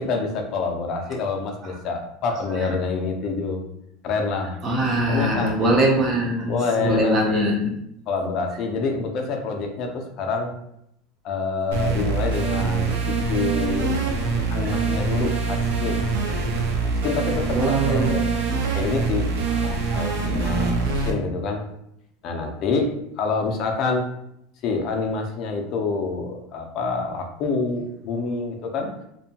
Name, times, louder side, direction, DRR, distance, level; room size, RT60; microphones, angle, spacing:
voice 1, 0.0-3.6 4.0-4.6 5.0-5.8 6.5-7.6 8.1-10.5 11.2-14.0 14.5-16.1 17.0-18.2 18.7-21.6 22.2-24.1 24.6-28.9, left 4 dB, 35° left, 3 dB, 0.4 m, -27 dB
voice 2, 4.6-7.7 17.5-18.3 19.7-20.7, right 1 dB, 20° right, 1 dB, 0.5 m, -23 dB
sound 1, 11.7-21.1, right 4 dB, 80° right, 0.5 m, -24 dB
2.7 x 2.2 x 2.7 m, 0.77 s
supercardioid pair, 170°, 0 cm